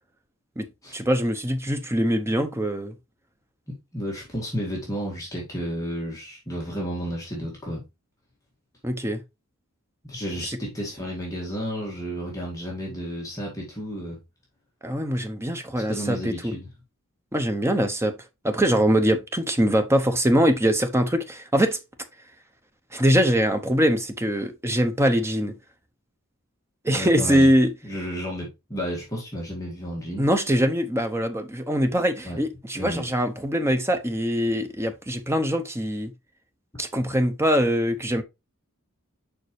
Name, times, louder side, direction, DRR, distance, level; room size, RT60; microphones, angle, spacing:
voice 1, 0.9-2.9 8.8-9.2 10.5-10.6 14.8-16.5 17.3-18.2 18.4-21.8 22.9-25.6 26.8-27.7 30.2-36.1 36.8-38.2, equal, 10° right, 0.7 m, -23 dB
voice 2, 3.7-7.8 10.0-14.2 15.9-16.7 26.9-27.5 27.8-30.3 32.2-32.4 32.7-33.0, equal, 15° left, 2.0 m, -32 dB
6.8 x 5.4 x 3.2 m
head